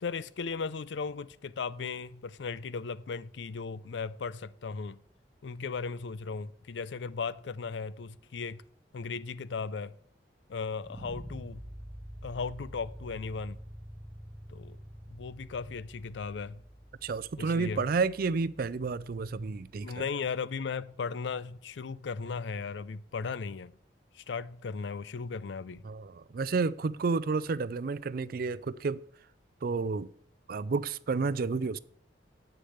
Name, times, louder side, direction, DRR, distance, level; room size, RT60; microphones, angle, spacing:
voice 1, 0.0-5.0 5.4-8.6 8.9-9.9 10.5-11.6 12.2-13.6 14.5-14.8 15.1-16.6 17.4-17.8 19.8-23.7 24.1-25.8, left 5 dB, 75° left, 0.5 m, -36 dB
sound 1, 10.8-19.8, equal, 10° right, 0.6 m, -47 dB
voice 2, 17.0-19.9 25.8-29.1 29.6-30.1 30.5-31.8, right 4 dB, 55° right, 0.4 m, -31 dB
8.2 x 6.6 x 7.8 m
head